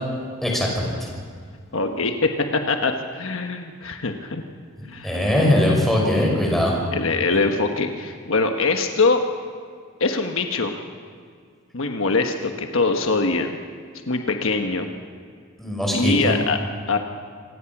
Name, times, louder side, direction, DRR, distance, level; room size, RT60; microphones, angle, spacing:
voice 1, 0.4-1.1 5.0-6.8 15.6-16.3, left 1 dB, ahead, -2 dB, 5.8 m, -21 dB
voice 2, 1.7-4.4 4.9-5.2 6.9-9.2 10.0-10.8 11.7-13.6 14.1-14.9 15.9-16.6 16.9-17.0, left 3 dB, 65° left, 4 dB, 1.3 m, -23 dB
26.5 x 17.5 x 6.1 m, 2.1 s
head